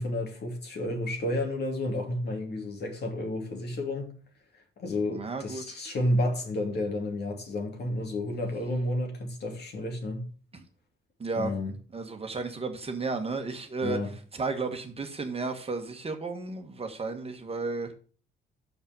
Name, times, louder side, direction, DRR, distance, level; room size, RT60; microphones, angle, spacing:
voice 1, 0.0-4.1 4.8-10.3 11.4-11.8 13.8-14.1, left 1 dB, 55° left, 3.0 m, -31 dB
voice 2, 5.1-5.6 10.5-10.6 11.2-11.5 11.9-14.0 14.3-17.9, right 3 dB, 30° right, 1.6 m, -33 dB
6.8 x 5.4 x 7.2 m
cardioid pair, 90°, 20 cm